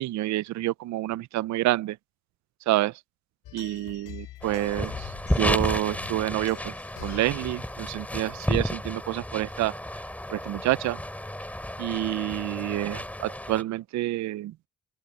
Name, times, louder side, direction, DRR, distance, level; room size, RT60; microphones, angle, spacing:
voice 1, 0.0-2.0 2.7-2.9 3.5-6.7 7.0-9.8 10.3-11.0 11.8-14.5, right 16 dB, 70° right, 0.5 m, -28 dB
sound 1, 3.4-9.2, left 14 dB, 90° left, 3.8 m, -45 dB
sound 2, 4.4-13.6, left 1 dB, 5° left, 2.9 m, -32 dB
open air
cardioid pair, 90°, 30 cm